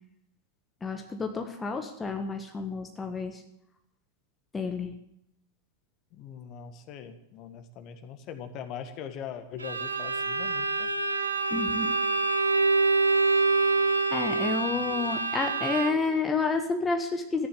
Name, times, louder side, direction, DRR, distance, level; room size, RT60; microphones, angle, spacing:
voice 1, 0.8-3.4 4.5-4.9 11.5-11.9 14.1-17.5, left 4 dB, 15° left, 4 dB, 1.5 m, -30 dB
voice 2, 6.1-10.9, left 8 dB, 40° left, 8 dB, 1.8 m, -41 dB
Bowed string instrument, 9.6-16.2, right 3 dB, 80° right, 1.2 m, -26 dB
14.5 x 10.5 x 7.9 m, 0.77 s
figure-of-eight pair, 90°, 0 cm